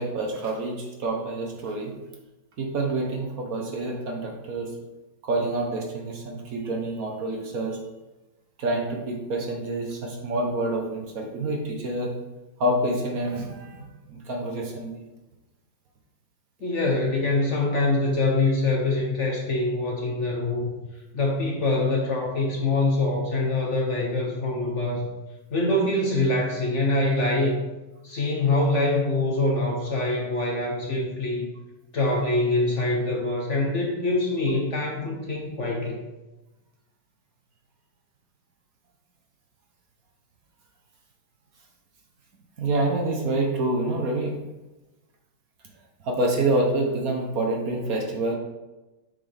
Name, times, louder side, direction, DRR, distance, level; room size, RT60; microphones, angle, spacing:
voice 1, 0.0-1.9 2.6-4.7 5.2-7.8 8.6-12.2 12.6-15.1 42.6-44.4 46.0-48.4, right 2 dB, 55° right, 1 dB, 1.4 m, -27 dB
voice 2, 16.6-20.7 21.1-25.1 25.5-27.6 28.0-31.5 31.9-36.0, left 2 dB, 50° left, 0 dB, 1.1 m, -24 dB
7.1 x 6.0 x 3.5 m, 1.1 s
omnidirectional pair, 2.0 m